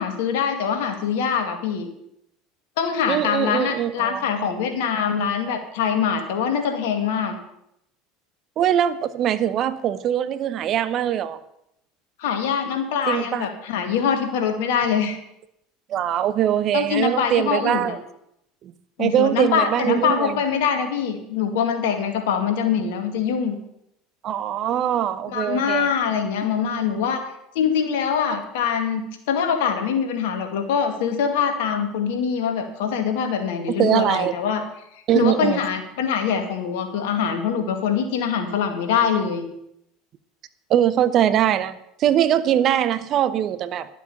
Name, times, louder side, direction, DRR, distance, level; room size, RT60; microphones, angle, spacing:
voice 1, 0.0-1.9 2.8-7.3 12.2-15.2 16.7-18.0 19.0-23.6 25.3-27.2 27.6-34.6 35.1-39.5, left 7 dB, 75° left, 2.0 m, -23 dB
voice 2, 3.1-4.2 8.6-11.4 13.1-13.5 15.9-18.0 18.6-18.7 19.0-20.4 24.2-25.9 33.8-34.3 35.1-35.6 40.7-43.9, right 10 dB, 50° right, 0.8 m, -22 dB
12.0 x 7.4 x 7.1 m
hypercardioid pair, 80°, 0 cm